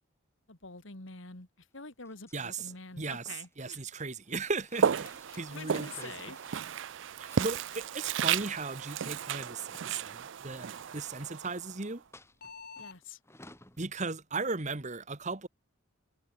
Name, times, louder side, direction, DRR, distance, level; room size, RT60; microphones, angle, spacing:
voice 1, 0.5-3.8 5.5-6.4 12.8-13.2, left 4 dB, 70° left, 2.5 m, -46 dB
sound 1, 2.0-6.8 7.2-7.9 8.9-11.6 12.1-13.8, left 2 dB, 15° left, 5.4 m, -59 dB
voice 2, 3.6-5.1 5.4-6.1 7.2-12.0 13.8-15.5, right 3 dB, 35° right, 1.4 m, -36 dB
sound 2, 4.7-13.0, left 5 dB, 45° left, 5.2 m, -57 dB
Walk footsteps, 4.7-11.9, right 7 dB, 60° right, 0.4 m, -34 dB
head